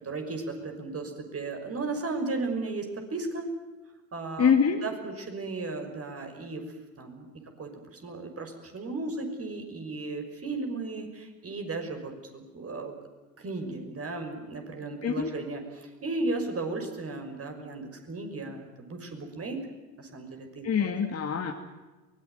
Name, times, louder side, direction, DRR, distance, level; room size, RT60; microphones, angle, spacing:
voice 1, 0.0-3.5 4.1-4.5 4.8-6.6 7.0-7.3 7.6-12.9 13.4-19.6 20.0-20.9, right 3 dB, 30° right, 5 dB, 6.0 m, -35 dB
voice 2, 4.4-4.8 15.0-15.3 20.6-21.5, left 7 dB, 30° left, 3 dB, 2.5 m, -24 dB
23.5 x 19.5 x 9.4 m, 1.2 s
hypercardioid pair, 75°, 48 cm